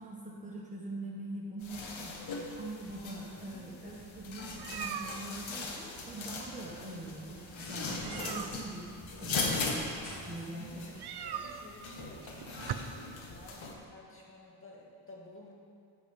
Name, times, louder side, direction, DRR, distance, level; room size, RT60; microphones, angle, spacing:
voice 1, 0.0-2.2 2.5-10.9, right 2 dB, 15° right, -4 dB, 1.2 m, -43 dB
sound 1, 1.6-13.7, left 3 dB, 85° left, 1.3 m, -40 dB
voice 2, 2.9-4.0 10.3-10.9 11.2-15.5, left 1 dB, 30° left, -3 dB, 1.7 m, -53 dB
sound 2, 3.8-12.7, right 8 dB, 60° right, 0.6 m, -45 dB
sound 3, 7.1-8.5 8.8-9.3 10.0-10.7 11.8-11.9 12.6-12.7 14.2-14.3, left 1 dB, 65° left, 2.7 m, -51 dB
9.0 x 5.2 x 7.1 m, 2.3 s
wide cardioid pair, 115°, 45 cm